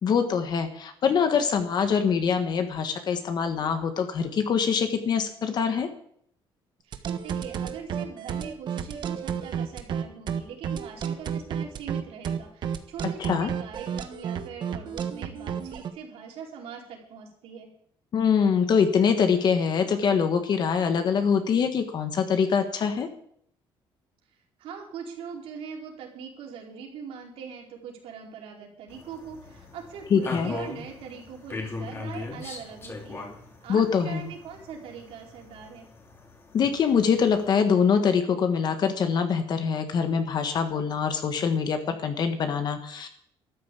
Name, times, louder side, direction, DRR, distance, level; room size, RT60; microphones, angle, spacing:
voice 1, 0.0-5.9 13.2-13.5 18.1-23.1 30.1-30.6 33.7-34.3 36.5-43.1, left 6 dB, 45° left, 7 dB, 1.6 m, -24 dB
voice 2, 6.8-17.7 24.6-33.3 33.6-35.9, right 6 dB, 80° right, 0 dB, 4.6 m, -42 dB
sound 1, 6.9-15.9, right 8 dB, 50° right, 1.4 m, -31 dB
sound 2, 28.9-37.5, left 3 dB, 25° left, 2.8 m, -40 dB
13.0 x 10.5 x 8.5 m, 0.67 s
cardioid pair, 150°, 10 cm